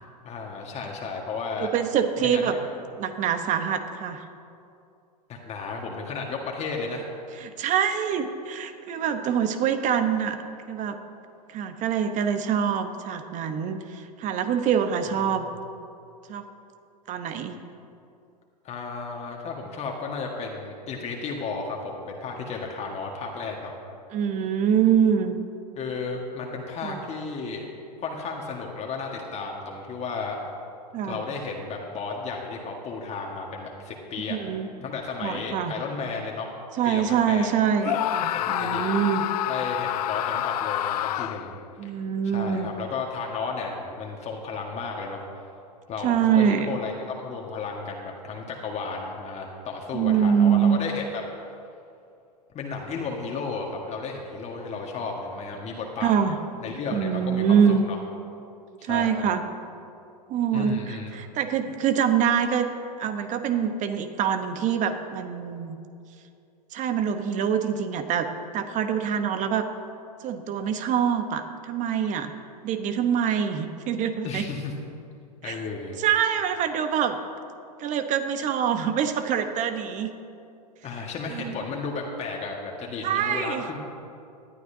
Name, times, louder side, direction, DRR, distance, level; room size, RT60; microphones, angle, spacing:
voice 1, 0.2-1.7 2.2-2.6 5.3-7.1 15.2-15.5 18.6-23.7 25.8-27.7 28.0-30.4 31.0-34.4 34.8-36.5 36.8-37.5 38.3-38.8 39.5-41.5 42.2-45.2 45.9-51.5 52.5-56.2 56.6-57.6 57.9-58.0 58.8-59.3 60.5-61.2 74.2-74.7 75.4-76.0 80.8-83.8, left 4 dB, 30° left, 0 dB, 1.6 m, -33 dB
voice 2, 1.6-2.5 3.0-4.2 7.4-10.4 10.7-11.0 11.5-15.5 16.3-16.4 17.1-17.6 24.1-25.3 26.8-27.0 30.9-31.2 34.3-34.7 35.2-35.7 36.8-39.2 41.8-42.7 46.0-46.7 49.9-50.8 56.0-56.4 56.9-57.8 58.8-59.4 60.3-62.7 63.0-65.8 66.7-68.3 68.5-69.6 70.2-72.3 72.6-74.4 75.4-75.6 76.0-77.1 77.8-80.1 81.3-81.6 83.0-83.7, right 8 dB, 35° right, 8 dB, 1.1 m, -25 dB
Screaming, 37.8-41.6, left 12 dB, 70° left, 0.4 m, -28 dB
19.0 x 11.5 x 2.8 m, 2.5 s
hypercardioid pair, 95°, 21 cm